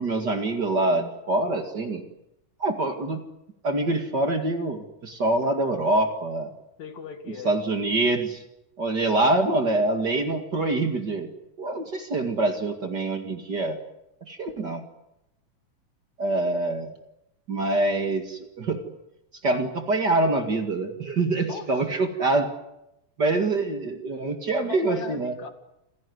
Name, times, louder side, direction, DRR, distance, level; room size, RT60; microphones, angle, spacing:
voice 1, 0.0-2.0 2.6-3.2 3.6-6.5 7.4-8.4 8.8-11.3 11.6-13.8 14.3-14.8 16.2-16.9 17.5-18.8 19.4-22.5 23.2-25.4, right 2 dB, 40° right, 5 dB, 2.4 m, -25 dB
voice 2, 6.8-7.5 21.5-21.7 24.6-25.5, left 6 dB, 70° left, 7 dB, 3.3 m, -38 dB
28.0 x 17.0 x 9.5 m, 0.87 s
omnidirectional pair, 3.4 m